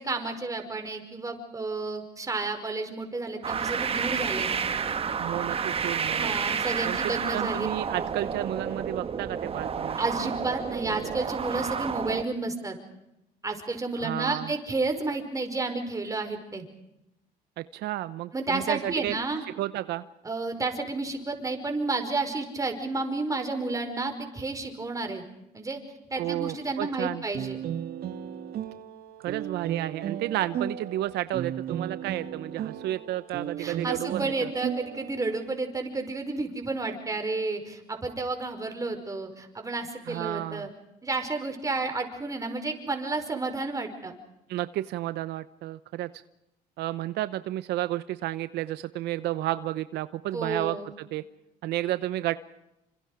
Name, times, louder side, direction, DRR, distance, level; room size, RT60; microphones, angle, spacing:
voice 1, 0.0-4.5 6.1-7.7 7.9-8.1 10.0-12.8 13.4-16.6 18.3-19.4 20.2-25.2 25.5-25.8 26.1-27.6 33.6-40.7 41.0-44.1 50.3-50.9, right 3 dB, 20° right, 5 dB, 5.2 m, -31 dB
sound 1, 3.4-12.2, right 6 dB, 35° right, 1.3 m, -30 dB
voice 2, 5.2-6.3 6.8-10.0 14.0-14.5 17.6-19.1 19.6-20.0 26.2-27.2 29.2-34.5 40.1-40.7 44.5-46.1 46.8-51.2 51.6-52.4, right 14 dB, 80° right, 13 dB, 0.8 m, -32 dB
sound 2, 27.3-35.4, right 9 dB, 65° right, 2.3 m, -35 dB
28.0 x 26.0 x 5.0 m, 0.88 s
cardioid pair, 110°, 17 cm